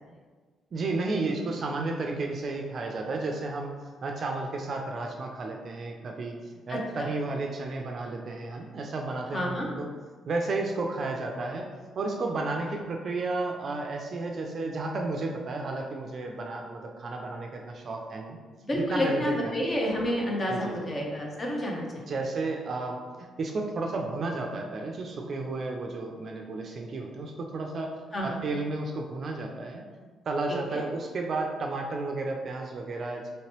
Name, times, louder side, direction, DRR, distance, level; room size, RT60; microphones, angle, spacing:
voice 1, 0.7-3.7 4.0-6.4 6.7-9.9 10.3-11.7 12.0-18.4 18.7-19.6 20.5-20.8 22.1-27.9 28.2-29.8 30.3-33.3, right 3 dB, 50° right, 1 dB, 0.3 m, -32 dB
voice 2, 6.7-7.1 9.3-9.7 18.7-22.0 28.1-28.4 30.7-30.8, equal, 35° left, -1 dB, 0.7 m, -29 dB
3.1 x 2.9 x 2.9 m, 1.4 s
cardioid pair, 90°, 0 cm